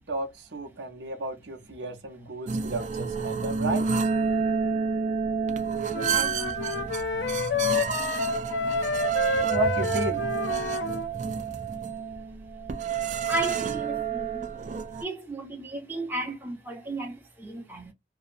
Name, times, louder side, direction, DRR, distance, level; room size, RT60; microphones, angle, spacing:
voice 1, 0.0-3.9 9.4-10.3, right 2 dB, 80° right, 0.8 m, -32 dB
sound 1, 2.5-15.0, right 6 dB, 40° right, 0.3 m, -29 dB
sound 2, 5.9-11.1, left 5 dB, 75° left, 0.4 m, -29 dB
voice 2, 5.9-7.0 9.2-9.4 11.2-11.6 13.3-14.5 15.0-17.9, right 1 dB, 10° right, 0.7 m, -35 dB
2.7 x 2.0 x 2.5 m
head